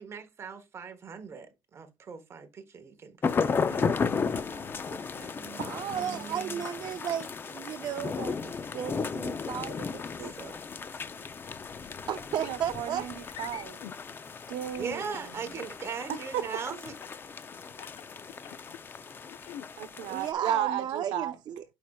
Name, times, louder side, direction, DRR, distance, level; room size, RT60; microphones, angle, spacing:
voice 1, 0.0-6.6 10.2-10.6 14.7-17.0, right 5 dB, 30° right, 0.9 m, -41 dB
sound 1, 3.2-20.3, left 5 dB, 25° left, 0.5 m, -35 dB
voice 2, 5.6-10.3 12.1-13.0 20.1-21.6, right 9 dB, 45° right, 0.5 m, -34 dB
sound 2, 12.4-12.6 13.3-14.0 14.7-15.3 16.8-17.2 17.7-18.8 19.3-19.7, left 11 dB, 70° left, 0.5 m, -45 dB
voice 3, 12.4-13.8 14.5-15.6 16.1-16.4 19.8-21.4, right 10 dB, 85° right, 0.9 m, -34 dB
9.1 x 4.8 x 2.3 m
cardioid pair, 155°, 9 cm